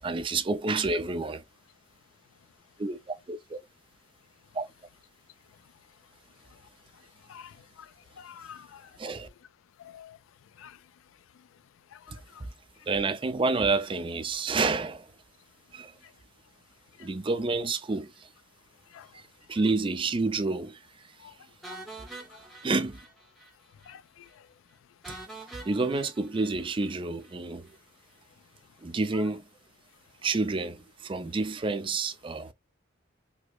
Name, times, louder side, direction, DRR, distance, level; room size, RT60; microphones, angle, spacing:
voice 1, 0.0-1.4 2.8-3.6 4.5-4.7 9.0-9.3 12.9-15.1 15.7-15.9 17.0-18.3 19.1-19.2 19.5-20.8 22.6-23.0 25.7-27.7 28.8-29.4 30.2-32.5, right 3 dB, 25° right, 0.4 m, -29 dB
voice 2, 7.3-7.9 8.2-9.2 9.8-10.2 10.6-10.8 11.9-12.4 17.0-17.1 18.9-19.1 21.2-21.3 21.7-21.8 22.3-22.4 23.9-24.4, left 8 dB, 85° left, 0.3 m, -49 dB
sound 1, 21.6-23.5 23.8-23.9 24.3-24.4 25.0-27.3, right 2 dB, ahead, 0.8 m, -46 dB
4.7 x 2.0 x 2.3 m
head